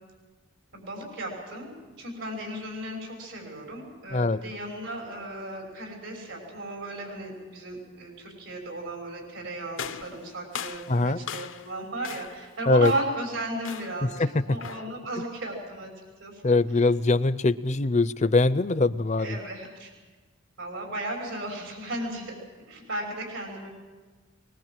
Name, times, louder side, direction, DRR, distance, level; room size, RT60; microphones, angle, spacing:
voice 1, 0.7-15.9 16.2-16.4 19.2-19.9 20.6-22.4 22.7-23.7, right 1 dB, 85° right, 2 dB, 6.2 m, -35 dB
sound 1, 9.8-11.7 12.0-12.5 12.8-13.2 13.6-14.1 14.6-15.0, left 7 dB, 80° left, 0.8 m, -39 dB
voice 2, 10.9-11.2 12.7-12.9 14.0-14.3 16.4-19.4, left 3 dB, 35° left, 16 dB, 0.6 m, -22 dB
22.5 x 20.5 x 7.6 m, 1.3 s
head